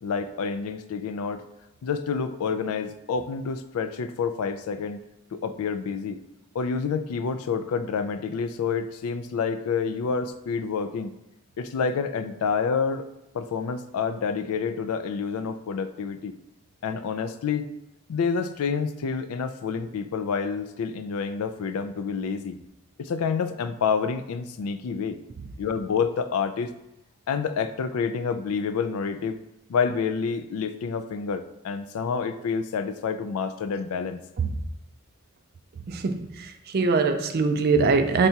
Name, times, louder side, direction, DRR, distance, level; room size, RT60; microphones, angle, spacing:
voice 1, 0.0-1.4 1.8-5.0 5.3-6.2 6.5-11.1 11.6-13.0 13.3-16.3 16.8-17.7 18.1-22.6 23.0-25.2 25.6-26.7 27.3-29.4 29.7-34.2, left 5 dB, 80° left, 10 dB, 0.3 m, -28 dB
voice 2, 35.9-38.3, right 4 dB, 45° right, 7 dB, 0.3 m, -23 dB
5.7 x 3.3 x 2.8 m, 0.91 s
head